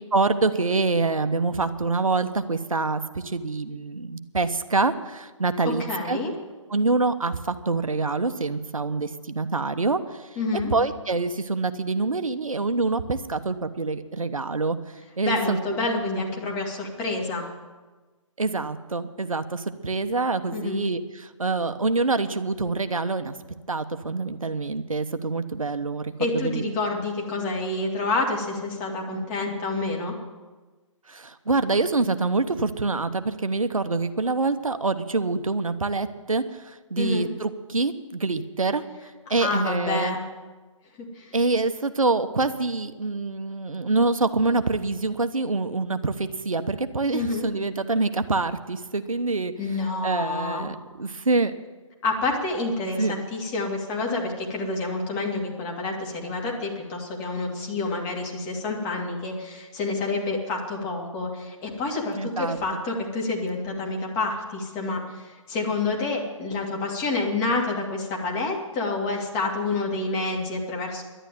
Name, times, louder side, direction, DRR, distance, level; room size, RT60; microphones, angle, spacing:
voice 1, 0.1-5.8 6.1-6.2 6.7-9.1 9.3-10.0 10.7-14.8 15.2-15.6 18.4-23.3 23.7-26.6 31.1-38.8 39.3-40.2 41.3-49.5 50.0-51.5 53.0-53.1 62.2-62.6, right 3 dB, 80° right, 9 dB, 1.0 m, -25 dB
voice 2, 5.6-6.3 10.4-10.7 15.2-17.5 20.5-20.8 26.2-30.1 37.0-37.3 39.3-40.2 41.1-41.4 47.1-47.5 49.6-50.7 52.0-71.0, left 3 dB, 20° left, 0 dB, 2.6 m, -28 dB
11.5 x 11.0 x 9.4 m, 1.3 s
figure-of-eight pair, 145°, 17 cm